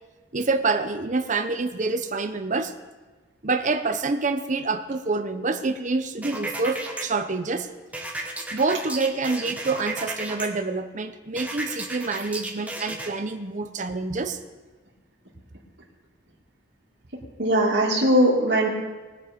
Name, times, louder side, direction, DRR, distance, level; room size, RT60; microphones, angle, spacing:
voice 1, 0.3-2.7 3.4-7.7 8.5-14.4, right 3 dB, 40° right, 7 dB, 0.8 m, -27 dB
sound 1, 6.2-7.0 7.9-10.5 11.4-13.1, right 2 dB, 10° right, 1.2 m, -33 dB
voice 2, 17.4-18.7, right 1 dB, 60° right, -4 dB, 2.5 m, -20 dB
20.0 x 7.4 x 5.2 m, 1.3 s
head